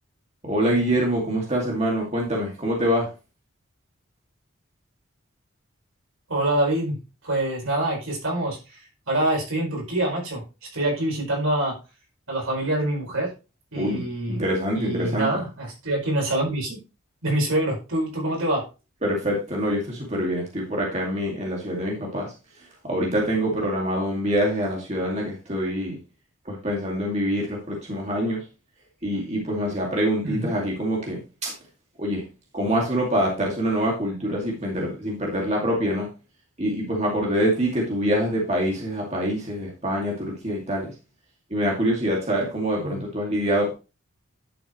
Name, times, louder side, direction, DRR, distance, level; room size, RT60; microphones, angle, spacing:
voice 1, 0.4-3.1 13.8-15.4 19.0-22.3 22.8-26.0 26.5-28.4 29.0-31.5 32.0-32.2 32.5-36.1 36.6-40.9 41.5-43.7, equal, 30° right, -2 dB, 2.3 m, -25 dB
voice 2, 6.3-8.8 9.1-10.4 10.7-11.8 12.3-13.3 13.7-14.4 14.7-16.8 17.2-18.6 30.2-30.5 42.8-43.0, right 1 dB, 80° right, -1 dB, 4.9 m, -25 dB
11.0 x 6.2 x 3.1 m, 0.30 s
head